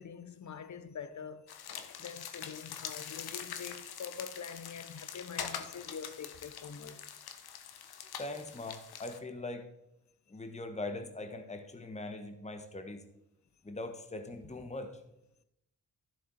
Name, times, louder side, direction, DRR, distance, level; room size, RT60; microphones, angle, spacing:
voice 1, 0.0-1.6 2.0-7.0, left 6 dB, 50° left, 0.9 m, -45 dB
sound 1, 1.5-9.2, left 8 dB, 75° left, 1.0 m, -44 dB
voice 2, 7.9-9.7 10.3-13.0 13.6-15.0, left 2 dB, 20° left, 1.3 m, -41 dB
12.0 x 6.7 x 4.3 m
supercardioid pair, 50°, 38 cm